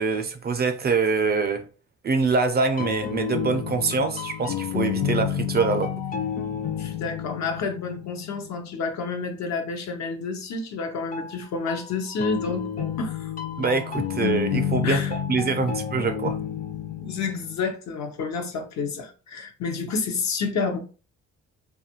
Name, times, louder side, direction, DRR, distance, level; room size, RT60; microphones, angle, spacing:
voice 1, 0.0-1.6 2.0-5.9 13.6-15.0 15.3-16.4, right 4 dB, 35° right, 0.4 m, -24 dB
sound 1, 2.6-9.2 11.1-17.6, left 8 dB, 30° left, 0.4 m, -30 dB
voice 2, 6.8-13.3 14.8-15.1 17.0-20.8, left 4 dB, 65° left, 0.7 m, -29 dB
2.6 x 2.3 x 2.8 m
cardioid pair, 90°, 30 cm